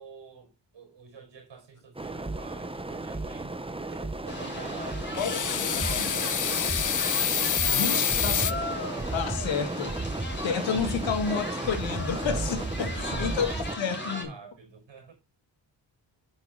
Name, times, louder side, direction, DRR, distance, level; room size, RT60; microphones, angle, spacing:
voice 1, 0.0-6.7 7.2-8.5 10.6-11.2 12.7-15.1, right 6 dB, 75° right, 5.4 m, -48 dB
sound 1, 2.0-13.8, right 2 dB, 10° right, 1.0 m, -34 dB
sound 2, 4.3-14.2, left 1 dB, 25° left, 3.4 m, -38 dB
sound 3, 5.1-8.5, left 8 dB, 45° left, 0.8 m, -27 dB
voice 2, 5.7-6.1 7.7-8.6 8.9-10.0 10.4-14.3, left 6 dB, 85° left, 1.9 m, -30 dB
8.9 x 5.6 x 3.9 m
cardioid pair, 65°, 44 cm